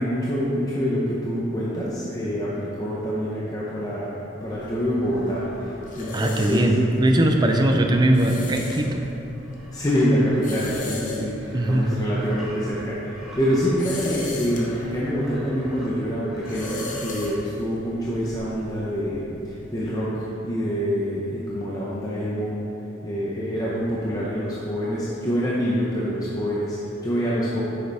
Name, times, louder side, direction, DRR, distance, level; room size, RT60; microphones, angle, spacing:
voice 1, 0.0-6.7 7.4-7.6 9.7-22.6 23.0-27.6, equal, 20° left, -7 dB, 0.8 m, -26 dB
sound 1, 4.4-19.9, left 2 dB, 40° left, 1.0 m, -38 dB
sound 2, 4.5-15.9 16.2-17.4, equal, 5° right, 1.6 m, -45 dB
voice 2, 6.1-9.0 11.5-11.9, right 1 dB, 20° right, 3 dB, 0.5 m, -20 dB
9.2 x 6.6 x 3.5 m, 2.9 s
head